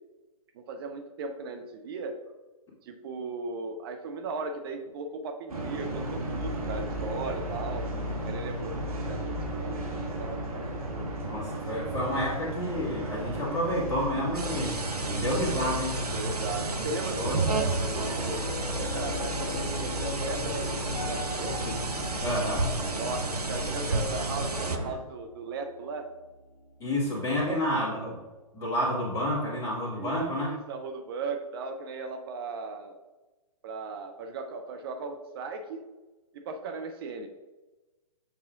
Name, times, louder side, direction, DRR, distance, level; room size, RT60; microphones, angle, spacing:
voice 1, 0.5-2.2 2.8-7.9 8.2-11.1 16.0-18.4 18.8-21.6 23.0-26.1 27.4-27.6 29.9-33.0 33.6-35.8 36.3-37.3, right 3 dB, 40° right, 5 dB, 0.6 m, -37 dB
sound 1, 5.5-25.0, right 1 dB, 65° right, 1.5 m, -35 dB
voice 2, 11.2-14.8 15.1-16.0 17.2-17.3 21.7-21.8 22.2-22.7 26.8-28.2 28.5-30.6, left 1 dB, 15° left, -6 dB, 2.0 m, -30 dB
sound 2, 14.3-24.8, right 3 dB, 90° right, 0.7 m, -32 dB
Piano, 17.2-27.6, left 3 dB, 60° left, 1.6 m, -41 dB
7.3 x 5.5 x 2.4 m, 1.2 s
figure-of-eight pair, 120°, 19 cm